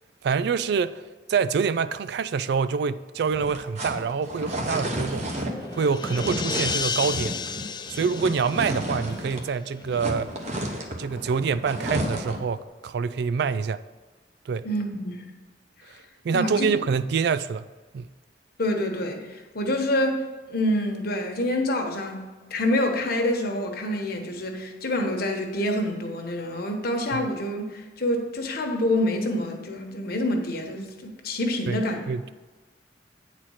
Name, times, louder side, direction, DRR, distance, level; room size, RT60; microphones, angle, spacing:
voice 1, 0.2-1.0 1.3-5.5 5.7-7.3 7.9-10.3 11.0-13.8 14.5-14.6 16.2-17.7 17.9-18.1 27.1-27.2 31.7-32.3, right 5 dB, 65° right, 14 dB, 0.3 m, -26 dB
sound 1, 3.2-9.5 9.8-12.5, right 1 dB, 40° right, 1.1 m, -32 dB
sound 2, 5.1-9.7, left 5 dB, 25° left, 0.4 m, -33 dB
voice 2, 14.6-15.2 15.9-16.0 16.3-16.7 18.6-32.0, left 1 dB, 60° left, 3 dB, 1.2 m, -27 dB
8.9 x 4.3 x 6.3 m, 1.3 s
head